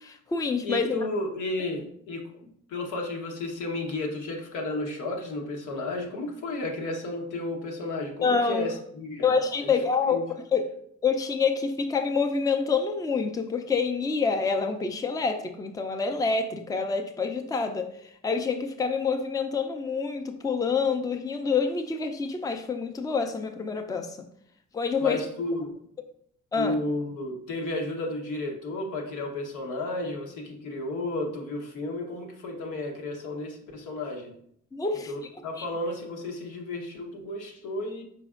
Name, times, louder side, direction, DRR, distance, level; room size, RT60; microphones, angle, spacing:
voice 1, 0.0-1.0 8.2-8.7 9.2-10.3 10.5-10.6 11.0-24.2 24.7-25.2 26.5-26.8 34.7-35.1 35.6-35.7, left 5 dB, 10° left, 6 dB, 0.4 m, -27 dB
voice 2, 0.6-9.3 9.6-9.8 10.0-10.2 25.0-25.7 26.5-34.3 35.1-38.0, left 2 dB, 85° left, 1 dB, 1.1 m, -33 dB
4.9 x 4.2 x 2.4 m, 0.67 s
cardioid pair, 90°, 30 cm